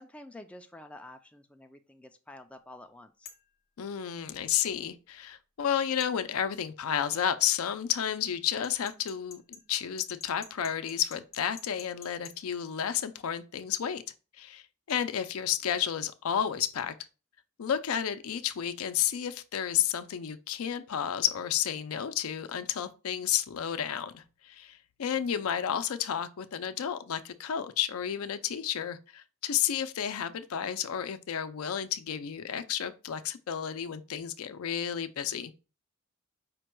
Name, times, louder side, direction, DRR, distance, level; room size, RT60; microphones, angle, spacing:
voice 1, 0.0-3.3 25.2-25.3, left 1 dB, 5° left, 0.3 m, -49 dB
sound 1, 3.3-3.5 6.0-6.2 8.6-12.4, left 6 dB, 50° left, 0.7 m, -48 dB
voice 2, 3.8-14.0 14.4-16.9 17.6-35.5, left 9 dB, 80° left, 0.4 m, -31 dB
5.1 x 2.2 x 4.4 m
head